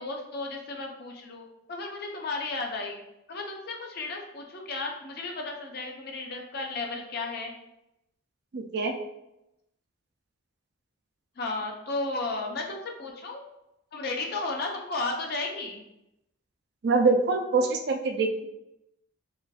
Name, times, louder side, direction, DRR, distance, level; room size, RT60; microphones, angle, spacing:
voice 1, 0.0-3.0 3.3-7.5 11.4-13.4 13.9-15.8, left 3 dB, 50° left, 1 dB, 0.6 m, -34 dB
voice 2, 8.5-9.0 16.8-18.5, right 3 dB, 50° right, 5 dB, 0.4 m, -24 dB
5.0 x 2.5 x 2.3 m, 0.86 s
head